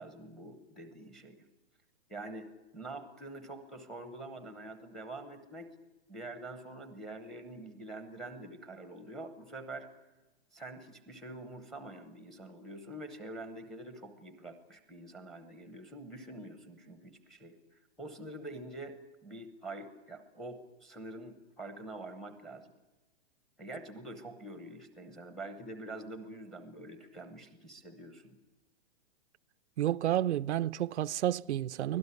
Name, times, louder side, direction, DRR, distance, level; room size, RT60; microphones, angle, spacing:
voice 1, 0.0-1.5 2.1-5.7 6.1-9.9 10.5-19.0 19.2-22.7 23.6-28.4, right 2 dB, ahead, 0.8 m, -46 dB
voice 2, 29.8-32.0, right 12 dB, 90° right, 0.7 m, -30 dB
24.5 x 17.5 x 9.7 m
hypercardioid pair, 180°, 33 cm